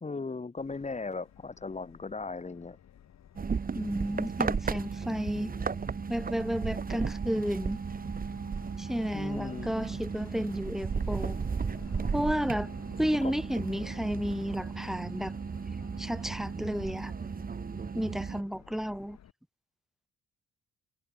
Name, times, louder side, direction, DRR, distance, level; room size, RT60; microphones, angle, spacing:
voice 1, 0.0-2.8 5.4-5.9 9.1-9.8 13.2-13.4, left 4 dB, 25° left, 2.3 m, -38 dB
Subway metro underground, 0.6-19.3, left 10 dB, 65° left, 6.1 m, -54 dB
sound 1, 3.4-18.4, right 5 dB, 30° right, 1.2 m, -35 dB
voice 2, 3.7-5.5 6.1-7.8 8.8-11.4 12.1-12.7 13.0-15.3 16.0-17.1 17.9-19.2, equal, ahead, 1.0 m, -32 dB
cardioid pair, 90°, 30 cm